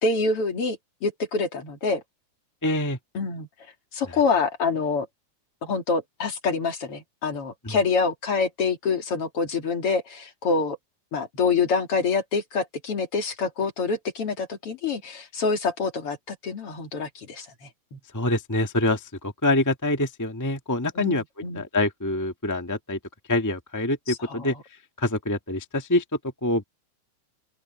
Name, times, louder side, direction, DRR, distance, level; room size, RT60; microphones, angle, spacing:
voice 1, 0.0-2.0 3.1-3.5 3.9-5.1 5.6-10.8 11.1-18.0 21.0-21.6 24.1-24.6, left 4 dB, 50° left, 3.3 m, -26 dB
voice 2, 2.6-3.0 7.6-7.8 18.1-21.2 21.5-23.0 23.3-24.6 25.0-26.0 26.4-26.6, left 2 dB, 10° left, 1.0 m, -25 dB
open air
omnidirectional pair, 3.3 m